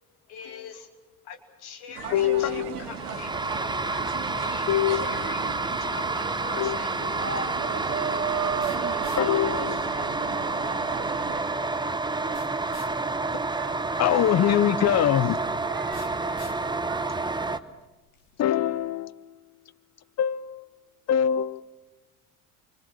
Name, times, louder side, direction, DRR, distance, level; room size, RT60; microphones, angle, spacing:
voice 1, 0.3-5.5 5.8-6.9, left 7 dB, 55° left, 2.8 m, -44 dB
sound 1, 2.0-11.4, right 6 dB, 75° right, 1.7 m, -34 dB
voice 2, 2.1-2.7 4.7-5.2 6.5-6.8 9.2-9.8 14.0-15.4 18.4-19.2 20.2-20.7 21.1-21.6, left 11 dB, 35° left, 0.9 m, -23 dB
sound 2, 2.8-17.6, right 3 dB, 10° right, 1.0 m, -29 dB
voice 3, 7.3-9.2 10.0-12.4 13.0-14.1 15.6-17.3, right 10 dB, 50° right, 1.4 m, -45 dB
sound 3, 8.6-18.5, left 6 dB, 75° left, 2.5 m, -54 dB
27.5 x 25.0 x 6.3 m
figure-of-eight pair, 60°, 45 cm